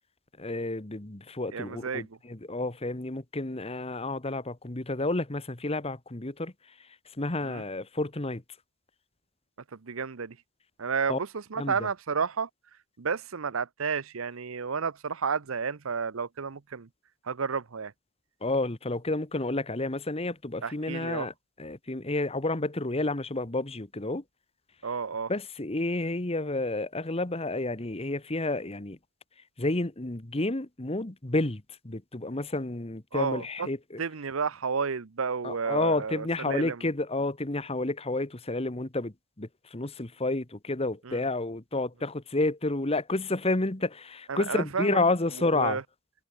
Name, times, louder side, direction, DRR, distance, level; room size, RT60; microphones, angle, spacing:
voice 1, 0.4-6.5 7.2-8.4 11.1-11.2 11.6-11.7 18.4-21.3 21.6-24.2 25.3-29.0 29.6-34.0 35.4-45.8, left 2 dB, 30° left, 1.4 m, -30 dB
voice 2, 1.5-2.1 7.4-7.6 9.7-10.4 10.8-12.5 13.0-16.9 17.2-17.9 20.6-21.3 24.8-25.3 33.1-33.7 34.0-36.8 41.0-41.2 44.3-45.0 45.4-45.8, right 5 dB, 80° right, 0.8 m, -31 dB
head